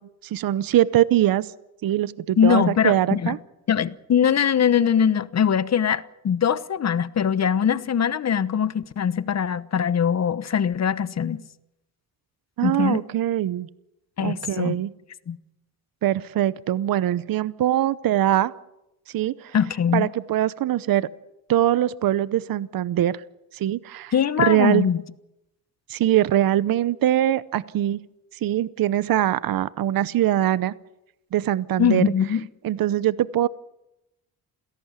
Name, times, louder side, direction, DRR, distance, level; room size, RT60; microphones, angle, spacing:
voice 1, 0.2-1.5 1.8-3.4 12.6-13.7 14.2-14.9 16.0-18.5 19.1-19.5 19.9-21.1 21.5-23.2 23.5-24.9 25.9-28.0 28.4-30.7 31.3-32.0 32.6-33.5, right 12 dB, 65° right, 0.8 m, -22 dB
voice 2, 2.4-3.3 3.7-11.4 12.6-13.0 14.2-14.8 15.3-15.4 19.5-20.1 24.1-25.0 31.8-32.4, left 8 dB, 45° left, 1.1 m, -22 dB
28.0 x 17.0 x 8.2 m
cardioid pair, 120°, 37 cm